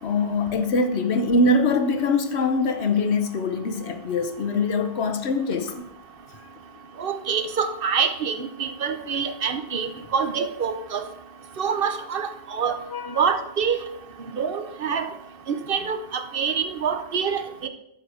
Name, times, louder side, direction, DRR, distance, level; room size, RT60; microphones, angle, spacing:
voice 1, 0.0-5.9 12.9-13.2, left 3 dB, 90° left, 1.2 m, -23 dB
voice 2, 7.0-11.1 11.6-12.8 13.2-13.8 14.4-15.1 15.5-17.7, right 6 dB, 65° right, 0.9 m, -26 dB
11.5 x 4.8 x 4.9 m
omnidirectional pair, 1.1 m